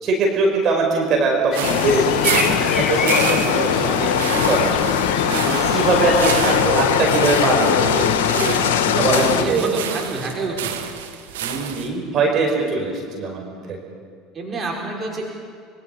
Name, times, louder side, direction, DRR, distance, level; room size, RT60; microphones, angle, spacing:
voice 1, 0.0-4.7 5.0-8.6 8.9-9.6 11.4-13.8, right 3 dB, 45° right, 1 dB, 5.1 m, -22 dB
sound 1, 1.5-6.5, left 6 dB, 45° left, 2.0 m, -28 dB
sound 2, 1.5-11.9, right 9 dB, 80° right, 1.4 m, -30 dB
sound 3, 1.6-9.4, left 8 dB, 75° left, 1.5 m, -20 dB
voice 2, 8.9-10.7 14.3-15.3, right 2 dB, 30° right, -1 dB, 5.1 m, -28 dB
24.5 x 23.5 x 5.5 m, 2.2 s
hypercardioid pair, 70°, 0 cm